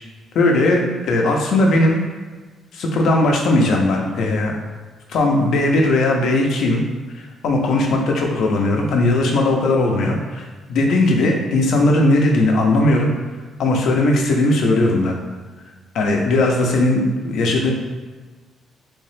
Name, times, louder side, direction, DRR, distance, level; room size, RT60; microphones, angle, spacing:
voice 1, 0.3-2.0 2.7-4.5 5.1-6.8 7.1-13.1 13.6-15.2 15.9-17.7, left 2 dB, 75° left, 1 dB, 0.6 m, -18 dB
3.5 x 2.8 x 3.3 m, 1.3 s
cardioid pair, 90°, 0 cm